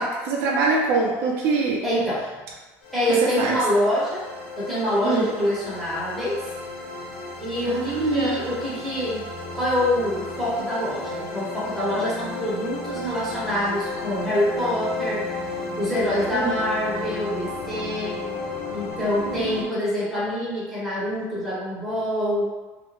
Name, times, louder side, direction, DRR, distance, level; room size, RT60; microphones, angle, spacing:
voice 1, 0.0-1.8 3.4-3.6 5.0-5.3 7.6-8.4 16.3-16.5 19.2-19.7, right 3 dB, 50° right, -2 dB, 0.4 m, -24 dB
voice 2, 1.8-2.3 2.9-4.2 4.6-6.4 7.4-9.2 9.5-15.2 15.8-18.2 18.7-22.5, equal, 5° left, -10 dB, 0.7 m, -25 dB
sound 1, 2.8-19.6, left 3 dB, 85° left, 0.8 m, -34 dB
2.4 x 2.0 x 3.0 m, 1.2 s
cardioid pair, 175°, 6 cm